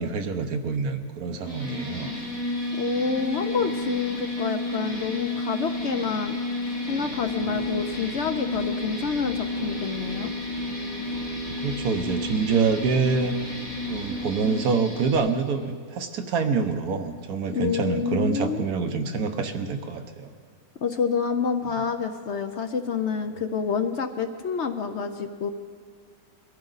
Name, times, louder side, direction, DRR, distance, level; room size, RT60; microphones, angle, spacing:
voice 1, 0.0-2.1 11.6-13.3 13.9-20.3 21.7-21.8, right 5 dB, 75° right, 6 dB, 1.4 m, -26 dB
sound 1, 1.4-15.1, left 1 dB, 10° right, 4.1 m, -31 dB
voice 2, 2.8-6.4 6.9-10.3 17.5-18.6 20.8-25.5, left 5 dB, 55° left, 7 dB, 0.8 m, -28 dB
sound 2, 6.9-14.3, left 2 dB, 45° right, 5.3 m, -44 dB
22.5 x 13.5 x 4.0 m, 2.2 s
omnidirectional pair, 1.6 m